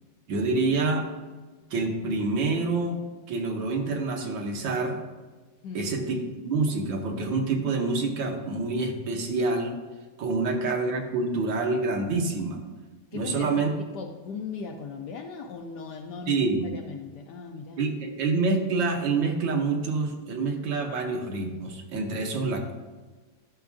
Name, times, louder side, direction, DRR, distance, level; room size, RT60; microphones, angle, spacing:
voice 1, 0.3-1.1 1.7-3.0 3.3-5.0 5.7-9.8 10.2-12.6 13.1-13.7 16.3-16.7 17.8-22.7, right 3 dB, 70° right, 3 dB, 1.6 m, -27 dB
voice 2, 5.6-5.9 10.4-10.6 13.1-17.9, left 5 dB, 75° left, 4 dB, 1.0 m, -38 dB
12.0 x 5.9 x 2.6 m, 1.3 s
omnidirectional pair, 2.2 m